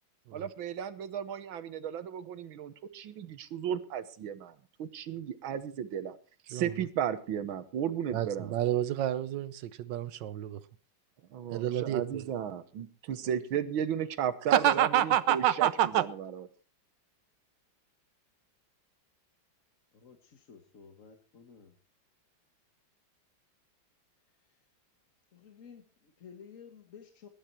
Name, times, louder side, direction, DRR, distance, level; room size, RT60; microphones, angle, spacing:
voice 1, 0.3-6.2 6.5-8.5 11.3-16.4, right 9 dB, 85° right, 13 dB, 1.9 m, -35 dB
voice 2, 8.1-10.6 11.5-12.3 14.5-16.1, right 11 dB, 70° right, 16 dB, 1.4 m, -28 dB
voice 3, 19.9-21.7 25.3-27.3, left 6 dB, 45° left, 6 dB, 1.5 m, -53 dB
20.0 x 9.7 x 4.4 m, 0.38 s
omnidirectional pair, 2.2 m